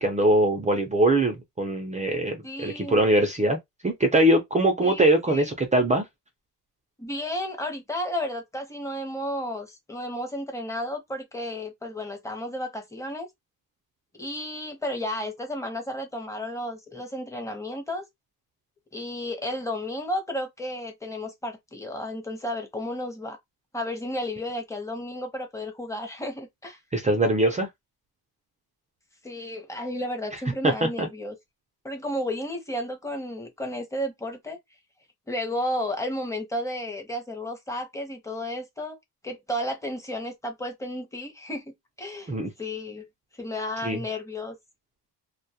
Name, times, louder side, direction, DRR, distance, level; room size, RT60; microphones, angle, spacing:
voice 1, 0.0-3.6 3.8-6.0 26.9-27.7 30.6-31.1 42.3-42.5 43.8-44.0, right 1 dB, 20° right, 0.4 m, -22 dB
voice 2, 2.4-3.0 4.8-5.5 7.0-13.3 14.2-18.0 18.9-23.4 23.7-26.8 29.2-31.3 31.8-34.6 35.3-39.0 39.2-42.3 42.6-43.1 43.4-44.6, left 1 dB, 10° left, 0.7 m, -33 dB
2.2 x 2.1 x 2.7 m
cardioid pair, 120°, 41 cm